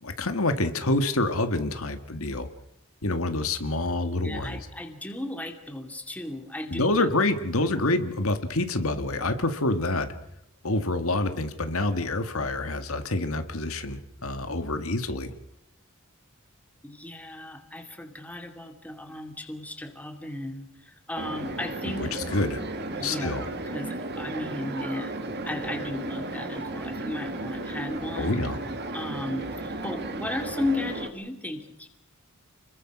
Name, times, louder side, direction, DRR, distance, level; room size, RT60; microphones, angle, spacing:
voice 1, 0.0-2.5 3.0-4.7 6.7-10.1 10.6-15.3 21.9-22.6 23.0-23.5 28.2-28.6, left 2 dB, 70° left, 8 dB, 1.9 m, -27 dB
voice 2, 4.1-7.1 7.7-7.8 16.8-22.1 22.9-23.4 23.7-28.4 28.9-31.9, left 1 dB, 5° left, 5 dB, 2.5 m, -35 dB
sound 1, 21.2-31.1, right 2 dB, 50° right, 2.5 m, -34 dB
30.0 x 22.0 x 6.1 m, 0.81 s
head